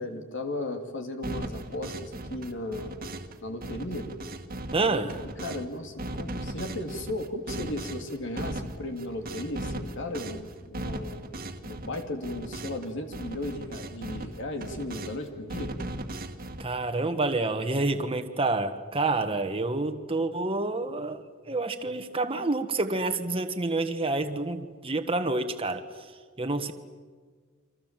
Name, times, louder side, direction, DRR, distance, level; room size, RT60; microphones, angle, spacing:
voice 1, 0.0-2.9 3.4-4.1 4.8-11.2 11.6-15.7, left 1 dB, 60° left, 5 dB, 3.0 m, -36 dB
sound 1, 1.2-3.4 3.6-5.6 6.0-12.9 13.1-15.2 15.5-16.6, right 1 dB, 45° right, 1.8 m, -37 dB
voice 2, 4.7-5.2 16.6-25.9 26.4-26.7, right 2 dB, 25° right, 6 dB, 1.5 m, -28 dB
30.0 x 25.0 x 7.6 m, 1.5 s
head